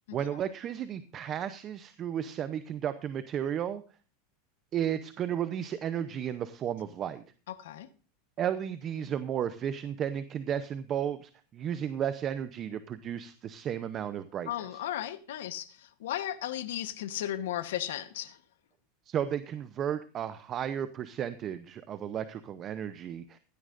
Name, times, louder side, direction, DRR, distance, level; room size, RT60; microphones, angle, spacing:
voice 1, 0.1-3.8 4.7-7.2 8.4-14.5 19.1-23.4, right 9 dB, 25° right, 0.7 m, -33 dB
voice 2, 7.5-7.9 14.5-18.4, left 12 dB, 90° left, 1.1 m, -35 dB
16.5 x 12.5 x 2.5 m
supercardioid pair, 160°, 0 cm